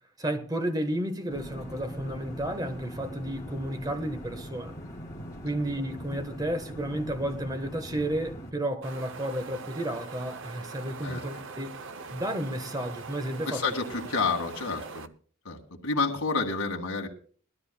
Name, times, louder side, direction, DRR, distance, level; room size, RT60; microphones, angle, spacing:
voice 1, 0.2-4.8 5.4-11.7 12.1-13.6, right 1 dB, 20° right, 1.2 m, -32 dB
sound 1, 1.3-8.5, equal, 15° left, 2.3 m, -41 dB
Wind, 8.8-15.1, right 4 dB, 60° right, 0.7 m, -42 dB
voice 2, 11.0-11.4 13.5-15.1 15.4-15.6 15.8-17.1, left 4 dB, 75° left, 2.0 m, -29 dB
21.0 x 13.0 x 2.2 m
head